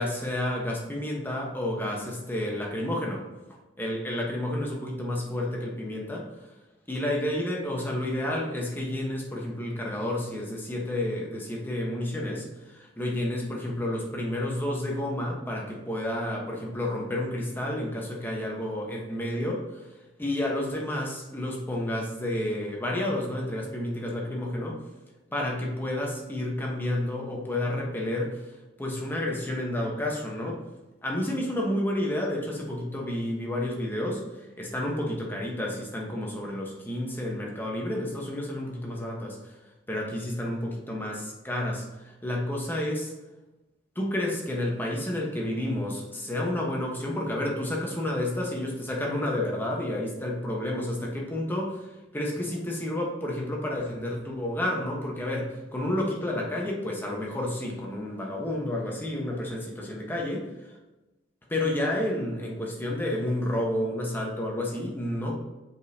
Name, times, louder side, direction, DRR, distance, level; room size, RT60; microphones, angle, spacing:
voice 1, 0.0-3.3 3.8-6.3 6.9-19.8 20.2-24.8 25.3-28.5 28.8-30.6 31.0-34.2 34.6-39.5 39.9-43.1 43.9-60.5 61.5-65.4, left 1 dB, 10° left, -2 dB, 1.2 m, -30 dB
7.2 x 5.3 x 2.8 m, 1.1 s
head